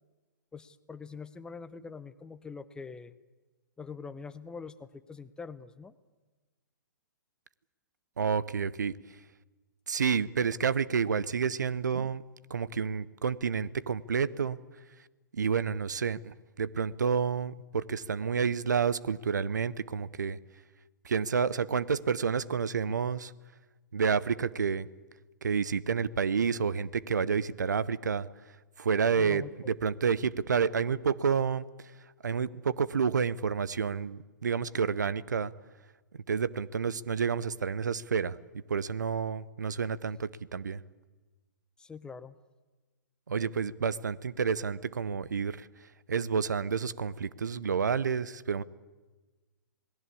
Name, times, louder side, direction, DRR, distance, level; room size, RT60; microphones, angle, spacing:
voice 1, 0.5-3.2 3.8-5.9 29.1-29.5 41.8-42.3, left 5 dB, 10° left, 14 dB, 0.7 m, -44 dB
voice 2, 8.2-8.9 9.9-12.2 12.5-14.6 15.3-20.4 21.0-23.3 23.9-24.9 25.4-28.3 28.8-31.6 32.2-35.5 36.3-38.4 38.7-40.8 43.3-45.7 46.1-48.6, right 6 dB, 65° right, 18 dB, 0.9 m, -29 dB
27.5 x 19.5 x 8.5 m, 1.2 s
figure-of-eight pair, 115°, 10 cm